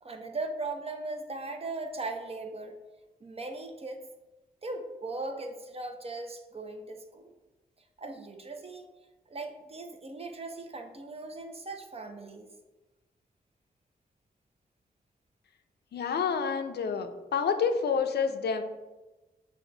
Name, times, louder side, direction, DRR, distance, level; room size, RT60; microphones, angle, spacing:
voice 1, 0.0-2.8 3.2-4.1 4.6-7.3 8.0-8.9 9.3-12.5, right 2 dB, 35° right, 5 dB, 0.7 m, -38 dB
voice 2, 15.9-18.6, left 6 dB, 75° left, 7 dB, 0.5 m, -28 dB
6.0 x 2.3 x 3.8 m, 1.1 s
cardioid pair, 60°, 17 cm